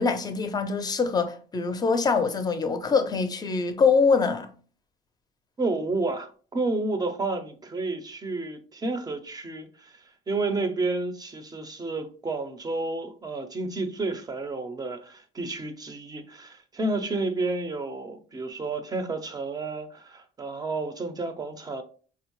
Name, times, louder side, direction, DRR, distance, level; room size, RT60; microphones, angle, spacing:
voice 1, 0.0-4.5, left 5 dB, 25° left, 0.5 m, -24 dB
voice 2, 5.6-21.8, right 3 dB, 25° right, 0.5 m, -31 dB
4.4 x 2.0 x 2.9 m
cardioid pair, 110°, 17 cm